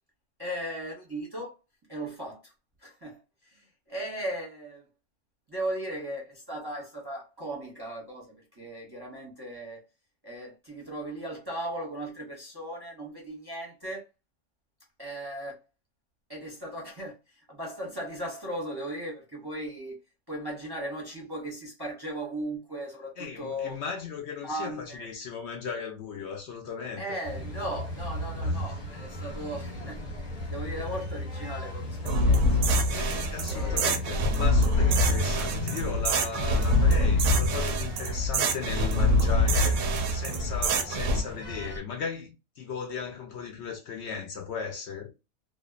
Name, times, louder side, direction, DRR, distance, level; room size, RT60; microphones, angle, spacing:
voice 1, 0.4-1.5 1.9-2.5 2.8-4.9 5.5-9.8 10.2-14.0 15.0-15.6 16.3-20.0 20.3-23.8 24.4-25.1 27.0-32.6 33.5-34.0, right 1 dB, 25° right, 0.6 m, -37 dB
voice 2, 23.2-27.2 28.4-28.8 32.9-45.1, left 6 dB, 65° left, 0.7 m, -37 dB
sound 1, 27.2-41.8, equal, 35° left, 1.0 m, -34 dB
sound 2, 32.1-41.2, left 1 dB, 70° right, 0.8 m, -25 dB
2.7 x 2.0 x 2.2 m
omnidirectional pair, 1.5 m